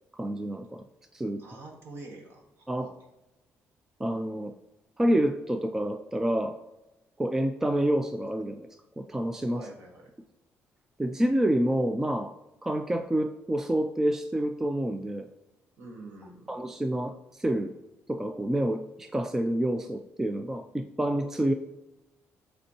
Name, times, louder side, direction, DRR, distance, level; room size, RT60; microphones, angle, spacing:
voice 1, 0.1-0.8 1.1-1.4 2.7-2.9 4.0-4.5 5.0-6.6 7.2-8.7 9.0-9.6 11.0-12.3 12.6-15.3 16.5-17.7 18.1-21.5, right 1 dB, 10° right, 7 dB, 0.3 m, -28 dB
voice 2, 1.4-2.9 9.6-10.1 15.8-16.5, right 2 dB, 55° right, 1 dB, 1.6 m, -46 dB
8.0 x 4.3 x 2.8 m, 0.96 s
cardioid pair, 165°, 5 cm